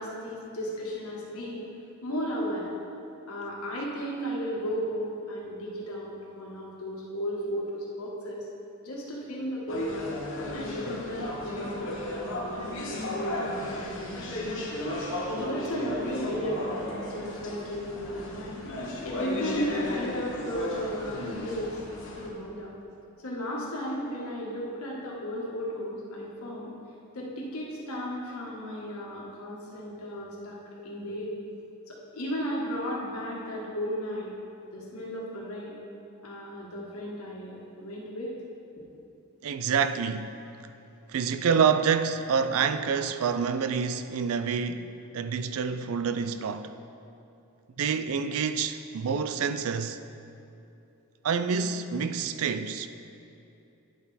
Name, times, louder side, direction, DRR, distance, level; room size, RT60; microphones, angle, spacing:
voice 1, 0.0-1.6 2.0-2.7 3.3-8.5 8.8-10.1 10.5-14.5 15.4-16.8 17.1-18.6 19.0-21.8 22.2-22.7 23.2-26.7 27.1-30.6 30.8-31.3 31.9-34.3 34.7-35.8 36.2-38.3, equal, 70° left, 1.6 m, -35 dB
sound 1, 9.7-22.3, left 1 dB, 55° left, 1.1 m, -34 dB
voice 2, 39.4-40.3 41.1-46.7 47.8-50.0 51.2-52.9, right 6 dB, 65° right, 0.4 m, -27 dB
9.6 x 5.9 x 4.1 m
head